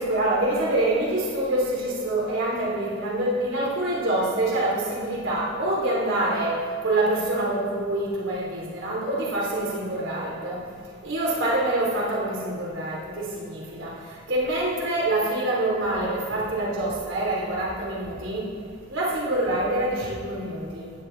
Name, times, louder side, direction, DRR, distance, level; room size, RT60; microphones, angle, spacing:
voice 1, 0.0-6.6 6.8-10.6 11.0-13.9 14.3-18.4 18.9-20.9, right 1 dB, 70° right, -5 dB, 3.7 m, -26 dB
15.0 x 10.5 x 4.1 m, 2.3 s
head